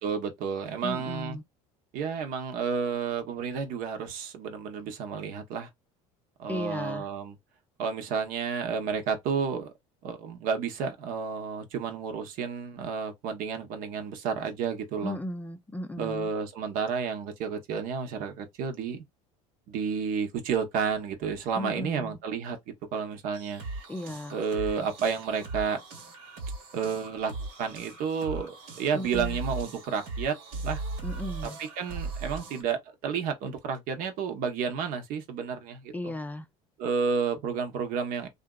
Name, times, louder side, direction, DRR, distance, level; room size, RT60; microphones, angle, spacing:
voice 1, 0.0-1.4 1.9-5.7 6.4-7.4 7.8-9.7 10.0-15.2 16.0-19.0 19.7-22.6 22.9-23.6 24.3-25.8 26.7-30.3 30.6-30.8 31.6-36.1 36.8-38.3, right 6 dB, 65° right, 0.9 m, -31 dB
voice 2, 0.8-1.4 6.5-7.1 15.0-16.3 21.5-22.1 23.9-24.4 28.9-29.4 31.0-31.6 35.9-36.5, left 1 dB, 10° left, 0.4 m, -35 dB
sound 1, 23.3-32.6, right 3 dB, 80° right, 1.5 m, -38 dB
2.7 x 2.5 x 2.3 m
supercardioid pair, 95°, 16 cm